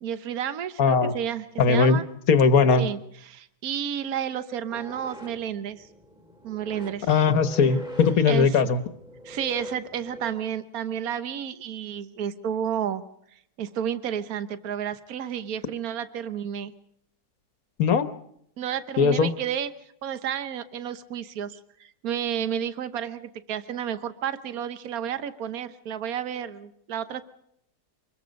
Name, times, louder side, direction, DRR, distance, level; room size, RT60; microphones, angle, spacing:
voice 1, 0.0-2.0 2.7-5.9 6.4-7.1 8.3-8.6 9.2-13.0 13.6-16.7 18.6-19.7 20.0-27.2, right 9 dB, 65° right, 12 dB, 1.5 m, -31 dB
voice 2, 0.8-1.1 1.6-2.0 2.3-2.9 7.1-8.8 17.8-18.1 19.0-19.3, left 5 dB, 60° left, 12 dB, 1.4 m, -19 dB
sound 1, 4.7-10.3, equal, 5° right, 2.4 m, -42 dB
25.5 x 21.5 x 5.3 m, 0.72 s
omnidirectional pair, 1.7 m